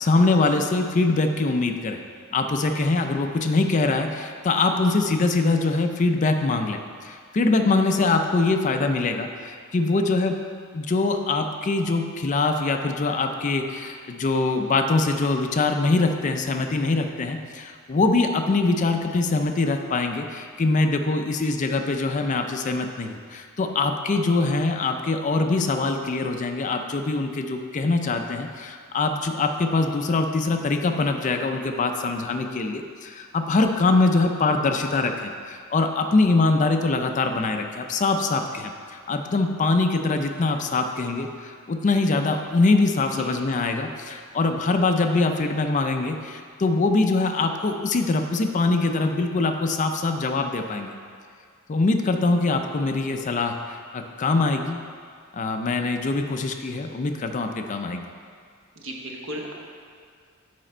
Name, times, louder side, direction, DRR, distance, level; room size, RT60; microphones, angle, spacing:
voice 1, 0.0-2.0 2.3-10.4 10.7-50.9 51.7-54.8 55.3-58.1, left 3 dB, 35° left, 6 dB, 0.4 m, -23 dB
voice 2, 58.8-59.5, equal, 70° right, 0 dB, 1.0 m, -35 dB
7.5 x 5.0 x 4.3 m, 2.1 s
head